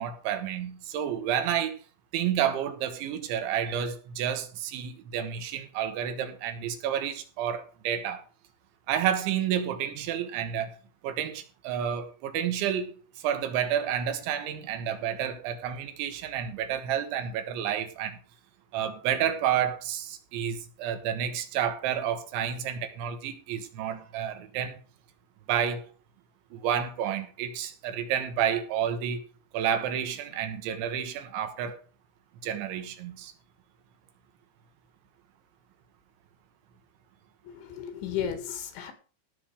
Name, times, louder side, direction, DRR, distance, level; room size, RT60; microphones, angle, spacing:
voice 1, 0.0-1.8 2.1-8.2 8.9-10.7 11.0-18.2 18.7-24.8 25.5-25.9 26.5-29.3 29.5-31.8 32.4-33.3, right 9 dB, 85° right, 3.8 m, -30 dB
voice 2, 37.4-38.9, left 9 dB, 85° left, 4.3 m, -34 dB
17.0 x 6.6 x 4.9 m
omnidirectional pair, 5.2 m